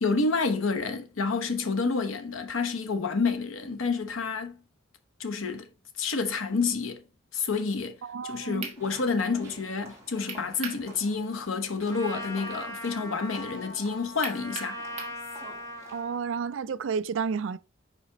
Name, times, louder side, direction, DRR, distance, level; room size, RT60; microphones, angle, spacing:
voice 1, 0.0-4.6 5.2-5.7 6.0-7.0 7.3-7.9 8.2-14.8, left 4 dB, 85° left, 0.9 m, -29 dB
voice 2, 8.0-8.7 15.9-17.6, right 6 dB, 70° right, 0.4 m, -31 dB
sound 1, 8.2-8.3 8.6-8.8 10.3-10.8 11.2-11.3 14.2-15.2, right 5 dB, 35° right, 1.3 m, -37 dB
sound 2, 8.8-16.0, right 1 dB, 15° right, 2.0 m, -50 dB
Trumpet, 11.9-16.2, left 1 dB, 15° left, 0.9 m, -40 dB
5.0 x 4.9 x 3.9 m
head